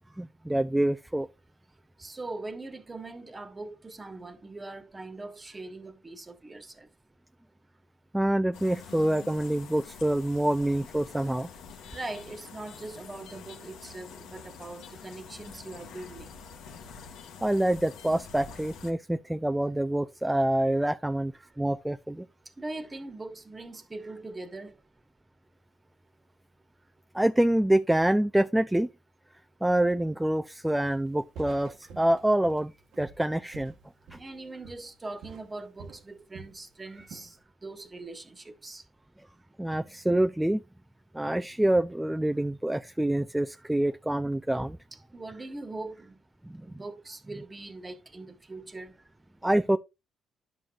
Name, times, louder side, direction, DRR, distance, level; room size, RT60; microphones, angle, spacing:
voice 1, 0.2-1.3 8.1-11.5 17.4-22.3 27.1-28.9 29.6-32.7 33.0-33.7 34.1-34.2 39.6-40.6 41.1-44.8 46.4-46.6 49.4-49.8, right 1 dB, 5° right, 0.4 m, -26 dB
voice 2, 2.0-6.9 11.9-16.3 22.6-24.7 34.2-37.4 37.6-38.8 39.2-39.3 45.1-46.1 46.6-48.9, right 2 dB, 25° right, 1.3 m, -41 dB
sound 1, 8.5-18.9, left 6 dB, 90° left, 1.2 m, -47 dB
Walk footsteps, 30.8-31.1 31.3-34.4 34.6-35.0 35.2-36.6 36.9-37.3, right 4 dB, 80° right, 1.2 m, -48 dB
10.5 x 6.1 x 2.4 m
cardioid pair, 90°, 0 cm